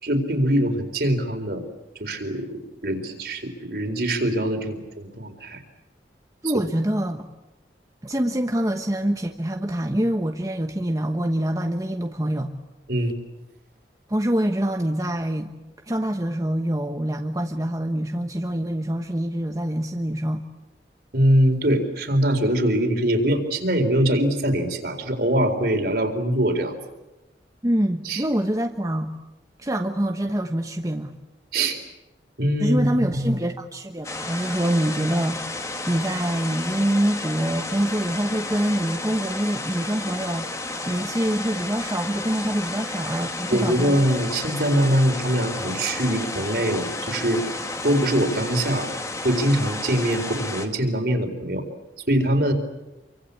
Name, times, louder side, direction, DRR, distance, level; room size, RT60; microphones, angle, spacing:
voice 1, 0.0-1.7 2.0-5.6 12.9-13.1 21.1-26.7 28.0-28.2 31.5-31.8 32.4-32.8 33.1-33.4 43.5-47.4 47.8-48.9 49.2-51.6 52.1-52.5, right 1 dB, 60° right, 5 dB, 4.2 m, -23 dB
voice 2, 6.4-7.3 8.0-12.5 14.1-15.5 15.9-20.4 27.6-29.1 29.6-31.1 32.6-40.5 40.9-44.1, right 1 dB, 20° right, 4 dB, 1.1 m, -25 dB
sound 1, 34.0-50.7, left 2 dB, 20° left, 2.1 m, -32 dB
28.0 x 24.5 x 8.5 m, 1.0 s
head